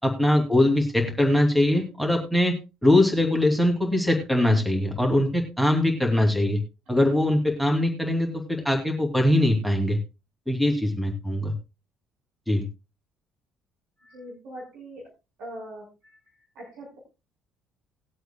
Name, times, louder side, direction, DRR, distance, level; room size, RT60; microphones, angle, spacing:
voice 1, 0.0-2.6 2.8-6.6 6.9-10.0 10.5-11.5 12.5-12.6, left 1 dB, 5° right, 3 dB, 2.9 m, -22 dB
voice 2, 14.0-15.1 15.4-17.0, right 1 dB, 65° right, -2 dB, 5.1 m, -42 dB
20.0 x 8.0 x 2.3 m, 0.27 s
hypercardioid pair, 50°, 0 cm